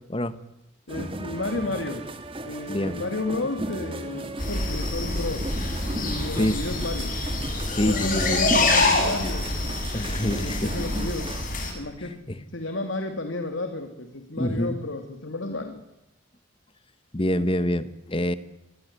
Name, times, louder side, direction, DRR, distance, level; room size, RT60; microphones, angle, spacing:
voice 1, 0.9-2.1 2.4-5.5 5.8-7.2 7.8-9.5 10.2-11.3 11.7-12.2 12.5-15.8, left 2 dB, 75° left, 7 dB, 2.8 m, -32 dB
sound 1, 0.9-11.4, right 1 dB, 25° right, 2.5 m, -36 dB
voice 2, 2.7-3.0 6.4-6.6 7.7-8.4 9.9-10.7 12.3-12.4 14.4-14.8 17.1-18.4, left 1 dB, 25° left, 13 dB, 1.3 m, -26 dB
sound 2, 4.4-11.7, left 2 dB, 40° left, 7.2 m, -26 dB
26.0 x 23.0 x 9.9 m, 0.89 s
head